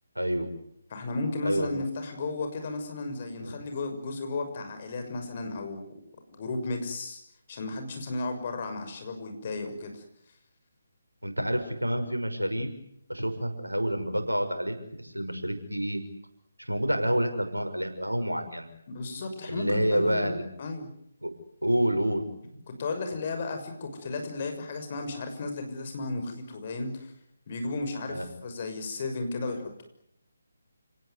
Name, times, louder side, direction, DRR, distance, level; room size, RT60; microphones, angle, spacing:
voice 1, 0.1-0.5 1.4-1.7 3.4-3.5 11.2-12.7 13.1-16.0 16.6-18.7 19.5-20.4 21.2-21.3 21.6-22.3 28.1-28.2, equal, 90° right, 6 dB, 6.0 m, -28 dB
voice 2, 0.9-6.0 6.3-7.2 7.5-10.0 18.9-20.9 22.7-27.1 27.5-29.8, left 3 dB, 40° left, 6 dB, 6.4 m, -34 dB
30.0 x 18.5 x 9.7 m, 0.76 s
figure-of-eight pair, 145°, 0 cm